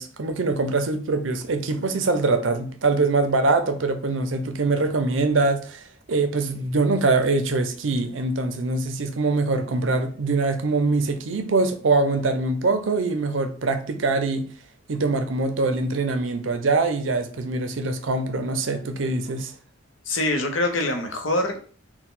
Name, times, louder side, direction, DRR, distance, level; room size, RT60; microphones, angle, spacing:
voice 1, 0.0-5.8 6.1-14.5 14.9-19.5, right 3 dB, 75° right, 0.6 m, -23 dB
voice 2, 20.1-21.7, left 2 dB, 80° left, 0.8 m, -24 dB
4.4 x 2.2 x 3.8 m
head